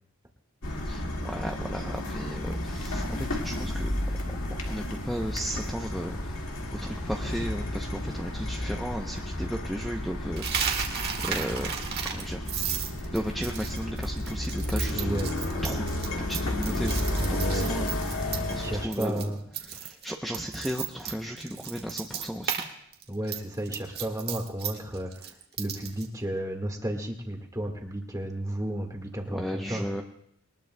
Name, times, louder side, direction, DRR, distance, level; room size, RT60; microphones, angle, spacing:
sound 1, 0.6-18.8, left 1 dB, 70° left, 2.0 m, -32 dB
voice 1, 0.8-4.2 4.7-6.4 6.7-10.9 11.2-11.8 12.0-12.4 13.1-15.2 15.6-15.8 16.3-16.9 17.3-19.3 19.6-22.7 29.3-30.0, equal, ahead, 1 dB, 0.7 m, -35 dB
sound 2, 1.6-13.9, right 1 dB, 50° left, 5.3 m, -53 dB
Coin (dropping), 10.4-18.6 18.9-19.2 19.5-22.7 22.9-26.1, right 8 dB, 45° right, 1.5 m, -34 dB
voice 2, 14.9-15.6 17.3-17.7 18.3-19.4 19.8-19.9 23.1-29.9, right 1 dB, 15° right, 2 dB, 1.6 m, -33 dB
21.5 x 19.5 x 2.2 m, 0.71 s
head